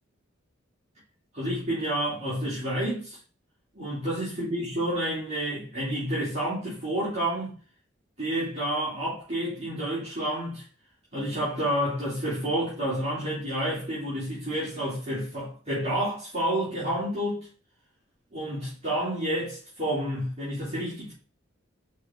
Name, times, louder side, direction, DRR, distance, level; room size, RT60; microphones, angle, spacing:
voice 1, 1.3-3.2 3.7-7.5 8.2-10.6 11.1-17.5 18.3-21.1, right 1 dB, 35° right, 3.1 m, -29 dB
6.2 x 4.5 x 3.8 m
head